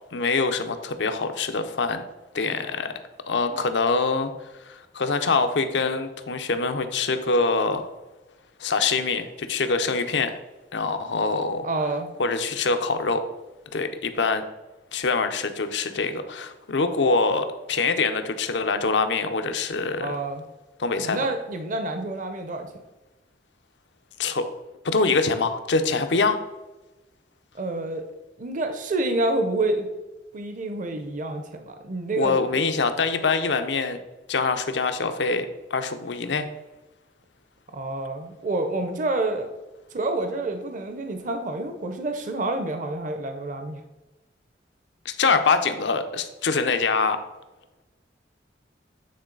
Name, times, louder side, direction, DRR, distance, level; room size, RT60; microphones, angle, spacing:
voice 1, 0.1-2.0 2.3-2.9 3.3-4.3 4.6-7.9 8.6-10.4 10.7-11.7 12.2-13.2 13.7-14.4 14.9-20.2 20.8-21.3 24.2-24.4 24.8-26.4 32.2-34.0 34.3-36.5 45.0-47.2, left 4 dB, 80° left, 8 dB, 0.6 m, -24 dB
voice 2, 11.6-12.1 20.0-20.4 21.0-22.7 27.5-28.0 28.4-29.9 30.3-32.4 37.7-39.5 39.9-43.8, right 2 dB, 45° right, 6 dB, 0.6 m, -28 dB
8.6 x 3.9 x 3.8 m, 1.1 s
head